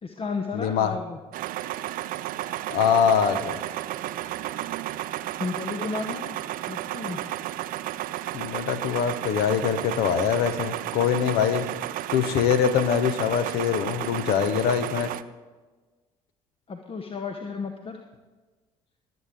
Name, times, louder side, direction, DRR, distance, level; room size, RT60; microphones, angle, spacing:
voice 1, 0.0-1.2 5.4-6.4 6.7-7.2 16.7-18.0, left 4 dB, 35° left, 5 dB, 0.9 m, -33 dB
voice 2, 0.5-1.0 2.7-3.6 8.3-11.7 12.1-15.1, left 8 dB, 65° left, 11 dB, 0.9 m, -23 dB
sound 1, 1.3-15.2, right 14 dB, 55° right, 0.5 m, -33 dB
20.5 x 7.9 x 3.6 m, 1.3 s
figure-of-eight pair, 50°, 17 cm